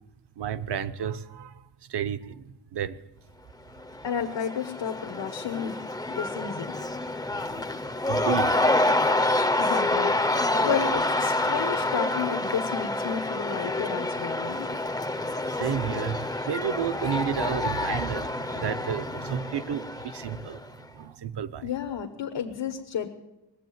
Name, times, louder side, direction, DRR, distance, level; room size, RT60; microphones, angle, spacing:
voice 1, 0.4-1.5 1.9-3.0 8.1-8.6 15.5-21.7, right 8 dB, 65° right, 12 dB, 0.8 m, -31 dB
Cheering / Crowd, 3.8-20.7, left 2 dB, 10° left, 0.5 m, -28 dB
voice 2, 4.0-5.8 6.1-6.8 9.6-14.7 21.6-23.1, left 8 dB, 75° left, 5 dB, 1.2 m, -32 dB
19.5 x 7.7 x 9.3 m, 0.97 s
wide cardioid pair, 135°, 44 cm